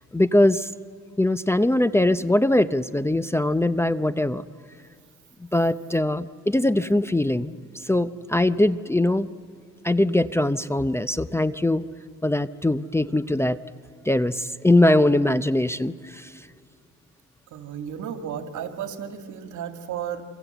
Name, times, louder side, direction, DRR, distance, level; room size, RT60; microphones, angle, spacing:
voice 1, 0.1-0.7 1.2-4.4 5.4-9.3 9.8-11.9 12.2-13.6 14.0-16.3, left 1 dB, 10° left, 13 dB, 0.6 m, -22 dB
voice 2, 17.5-20.3, right 8 dB, 75° right, 6 dB, 2.3 m, -33 dB
27.5 x 25.5 x 8.0 m, 2.2 s
cardioid pair, 90°, 30 cm